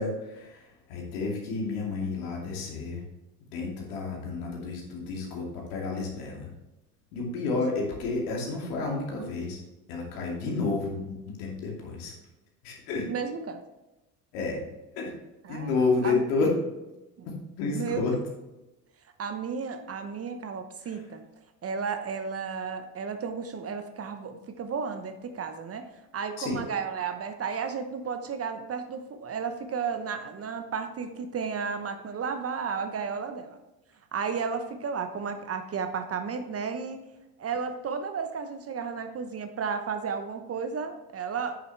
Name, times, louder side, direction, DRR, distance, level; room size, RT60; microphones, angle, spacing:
voice 1, 0.0-3.0 3.5-6.5 7.1-9.6 9.9-12.1 12.6-13.1 14.3-14.6 15.0-15.1 15.5-16.5 17.6-18.1 26.4-26.6, left 4 dB, 65° left, -1 dB, 2.7 m, -30 dB
voice 2, 13.1-13.6 15.4-15.7 16.0-16.2 17.2-17.3 17.7-18.1 19.2-21.2 21.6-33.6 34.1-37.0 37.4-41.6, right 6 dB, 30° right, 8 dB, 0.9 m, -33 dB
8.8 x 6.9 x 3.3 m, 1.0 s
hypercardioid pair, 65°, 47 cm